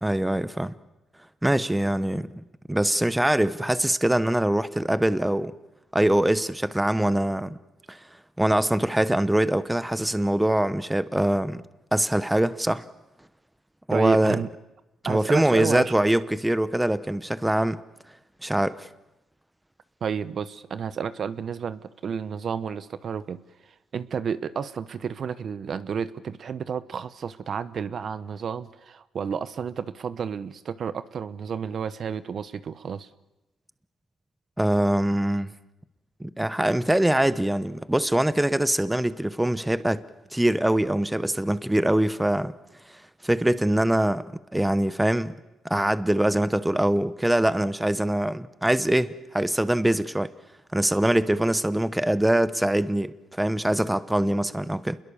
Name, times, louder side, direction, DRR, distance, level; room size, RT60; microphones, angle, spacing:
voice 1, 0.0-0.7 1.4-5.5 5.9-7.6 7.9-8.0 8.4-11.6 11.9-12.8 13.9-14.4 15.0-17.8 18.4-18.9 34.6-35.5 36.2-40.0 40.3-42.5 43.2-44.2 44.5-45.3 45.7-50.3 50.7-55.0, right 1 dB, 5° right, 0.9 m, -23 dB
voice 2, 13.9-14.5 15.0-15.9 20.0-23.4 23.9-33.1, right 7 dB, 55° right, 1.0 m, -31 dB
28.0 x 21.5 x 7.1 m
cardioid pair, 90°, 0 cm